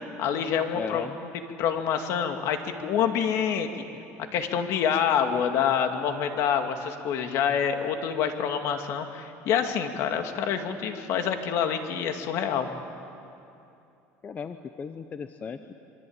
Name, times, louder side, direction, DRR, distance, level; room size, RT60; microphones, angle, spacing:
voice 1, 0.2-1.1 1.6-3.7 4.3-12.7, left 8 dB, 60° left, 6 dB, 2.4 m, -27 dB
voice 2, 0.7-1.1 14.2-15.7, left 6 dB, 30° left, 9 dB, 0.9 m, -36 dB
26.0 x 23.5 x 8.9 m, 2.7 s
cardioid pair, 135°, 6 cm